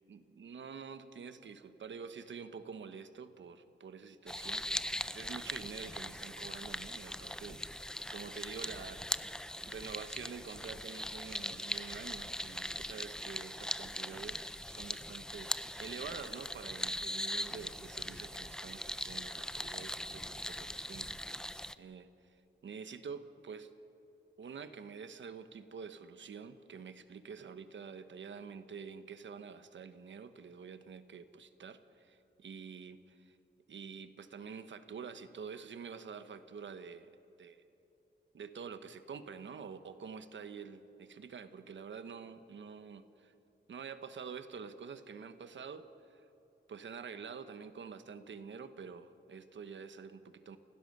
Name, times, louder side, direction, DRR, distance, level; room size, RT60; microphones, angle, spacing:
voice 1, 0.1-9.3 9.7-21.3 21.8-22.4 22.6-23.7 24.4-33.4 33.7-37.1 37.4-37.5 38.3-43.3 43.7-46.2 46.7-50.6, right 6 dB, 75° right, 11 dB, 1.1 m, -47 dB
sound 1, 4.3-21.7, left 1 dB, 5° left, 0.4 m, -40 dB
29.5 x 16.5 x 6.7 m, 2.9 s
wide cardioid pair, 160°, 20 cm